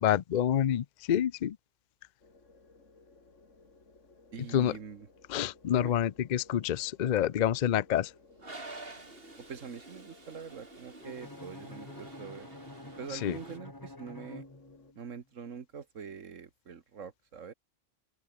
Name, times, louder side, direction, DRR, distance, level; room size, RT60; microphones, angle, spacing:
voice 1, 0.0-1.6 4.5-4.8 5.3-8.1 13.1-13.4, left 10 dB, 55° left, 0.5 m, -28 dB
sound 1, 2.2-14.9, left 3 dB, 70° left, 3.6 m, -59 dB
voice 2, 4.3-5.1 5.8-5.9 9.5-12.5 13.0-14.4 15.0-17.5, right 6 dB, 75° right, 1.9 m, -44 dB
Toilet flush, 8.4-13.6, right 2 dB, 45° right, 3.6 m, -49 dB
Bowed string instrument, 11.0-15.1, left 2 dB, 15° left, 1.6 m, -48 dB
open air
omnidirectional pair, 1.3 m